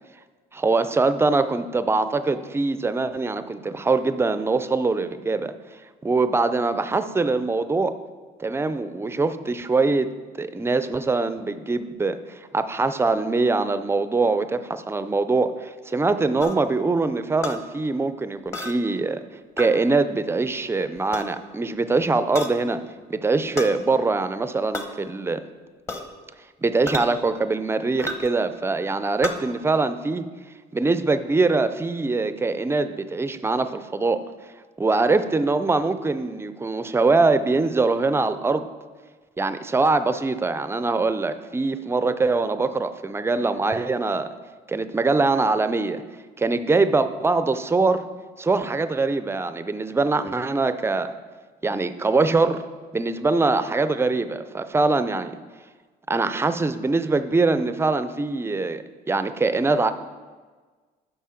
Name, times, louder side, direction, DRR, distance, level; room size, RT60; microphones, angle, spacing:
voice 1, 0.5-5.5 6.0-7.9 8.4-10.1 10.4-19.2 19.6-22.8 23.1-25.4 26.6-30.3 30.7-34.2 34.8-38.7 39.4-44.3 44.7-46.0 46.4-48.0 48.4-51.1 51.6-52.6 52.9-55.4 56.1-59.9, right 3 dB, 15° right, 11 dB, 0.4 m, -23 dB
sound 1, 16.4-16.6 17.4-17.6 18.5-18.8 19.6-19.7 21.0-21.3 22.3-22.5 23.6-23.7 24.7-24.9 25.9-26.1 26.9-27.1 28.0-28.3 29.2-29.4, left 2 dB, 15° left, 0.9 m, -31 dB
8.5 x 5.4 x 5.8 m, 1.4 s
cardioid pair, 110°, 17 cm